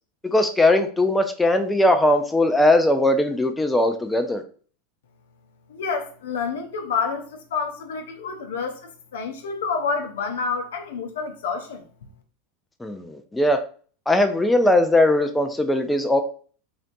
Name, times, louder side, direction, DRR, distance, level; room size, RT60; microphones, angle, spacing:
voice 1, 0.2-4.4 12.8-13.6 14.1-16.2, left 1 dB, 10° left, 0.5 m, -19 dB
voice 2, 5.7-11.8, left 5 dB, 65° left, 0.6 m, -28 dB
3.9 x 3.2 x 2.6 m
figure-of-eight pair, 80°, 0 cm